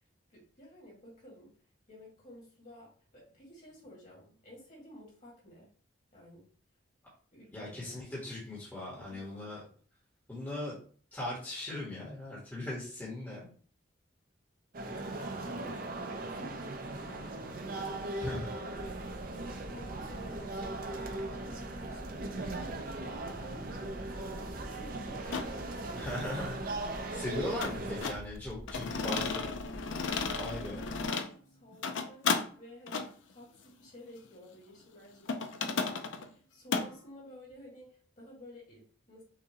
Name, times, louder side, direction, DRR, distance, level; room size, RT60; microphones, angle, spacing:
voice 1, 0.3-1.6 1.9-5.7 6.1-6.5 7.3-8.0 9.0-9.7 15.5-22.4 22.9-26.2 27.2-27.3 29.9-39.2, equal, 40° left, -4 dB, 2.1 m, -53 dB
voice 2, 7.5-9.6 10.3-10.8 11.1-13.5 18.2-18.5 25.9-26.6 26.9-29.5 30.4-30.8, left 1 dB, 10° left, -7 dB, 1.4 m, -39 dB
sound 1, 14.7-28.1, right 2 dB, 50° right, 0.6 m, -39 dB
sound 2, 18.7-31.1, equal, 5° right, 0.6 m, -48 dB
sound 3, 25.3-25.5 27.6-28.2 28.7-31.3 31.7-32.5 32.9-33.1 35.3-36.3 36.7-36.9, left 4 dB, 75° left, 0.5 m, -33 dB
5.8 x 2.7 x 3.0 m, 0.43 s
head